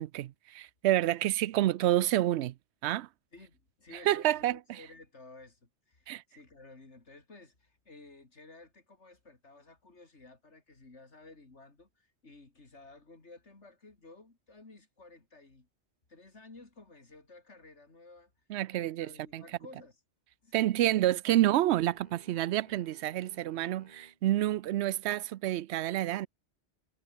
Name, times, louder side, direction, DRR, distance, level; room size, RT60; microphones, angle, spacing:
voice 1, 0.0-2.5 2.8-3.1 4.1-4.6 6.1-6.2 18.5-19.4 20.5-26.3, right 13 dB, 75° right, 0.8 m, -28 dB
voice 2, 3.3-15.7 16.1-18.3 18.7-20.0 20.4-21.2, left 3 dB, 85° left, 3.7 m, -54 dB
sound 1, 21.4-24.2, right 1 dB, 35° right, 6.5 m, -58 dB
omnidirectional pair, 1.1 m